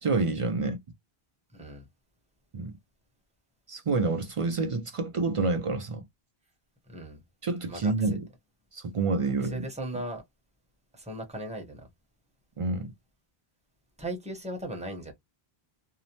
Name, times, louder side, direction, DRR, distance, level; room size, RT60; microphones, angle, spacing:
voice 1, 0.0-0.8 2.5-2.7 3.7-6.0 7.4-8.3 8.7-9.7 12.6-12.9, right 3 dB, 55° right, 0.3 m, -28 dB
voice 2, 1.5-1.9 6.9-7.2 7.7-7.9 9.4-10.2 11.0-11.8 14.0-15.1, right 1 dB, 5° right, 0.7 m, -37 dB
2.7 x 2.0 x 2.8 m
omnidirectional pair, 1.1 m